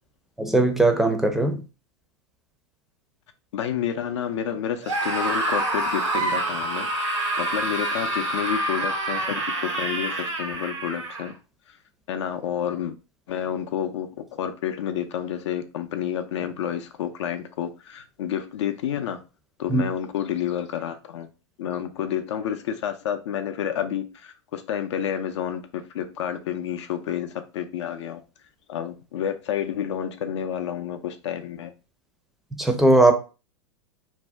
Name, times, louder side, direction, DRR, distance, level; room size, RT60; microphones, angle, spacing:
voice 1, 0.4-1.6 19.7-19.8 32.6-33.1, right 2 dB, ahead, 0.5 m, -19 dB
voice 2, 3.5-6.9 7.4-9.4 9.6-11.3 12.1-13.0 13.3-19.2 19.6-21.3 21.6-28.2 28.7-31.7, left 9 dB, 70° left, 0.4 m, -29 dB
Screaming, 4.8-11.3, right 2 dB, 90° right, 1.1 m, -27 dB
2.6 x 2.1 x 3.3 m
hypercardioid pair, 110°, 16 cm